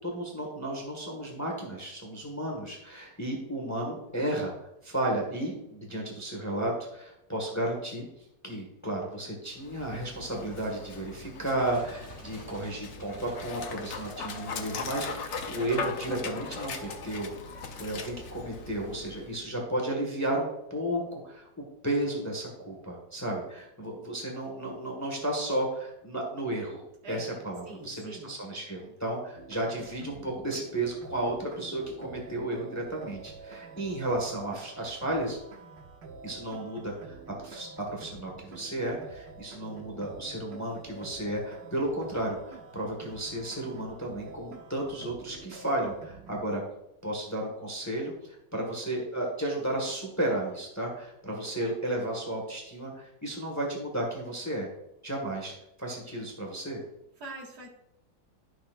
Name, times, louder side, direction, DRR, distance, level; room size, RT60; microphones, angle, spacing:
voice 1, 0.0-4.5 4.8-8.0 8.4-17.3 17.8-35.4 36.2-37.2 37.4-46.6 47.0-54.7 55.0-55.5 55.8-56.8, right 1 dB, 10° left, 0 dB, 1.5 m, -33 dB
Dog, 9.5-19.4, left 4 dB, 55° left, 0.9 m, -39 dB
sound 1, 11.5-14.6 15.0-16.3 16.6-17.0, equal, 20° right, 2.7 m, -50 dB
voice 2, 27.0-28.4 57.2-57.7, right 2 dB, 60° right, -2 dB, 2.4 m, -43 dB
sound 2, 29.3-46.4, right 4 dB, 85° right, 1.6 m, -48 dB
11.5 x 6.3 x 2.5 m, 0.84 s
omnidirectional pair, 1.9 m